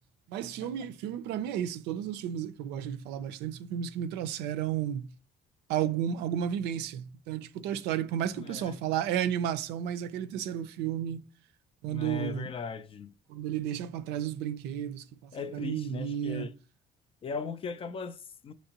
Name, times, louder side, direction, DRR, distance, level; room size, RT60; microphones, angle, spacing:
voice 1, 0.3-5.1 5.7-11.2 11.8-12.5 13.3-16.5, right 10 dB, 90° right, 0.4 m, -32 dB
voice 2, 8.3-8.8 11.9-13.1 15.3-16.5 17.2-18.5, left 5 dB, 35° left, 0.4 m, -38 dB
5.9 x 3.0 x 2.8 m
cardioid pair, 110°, 17 cm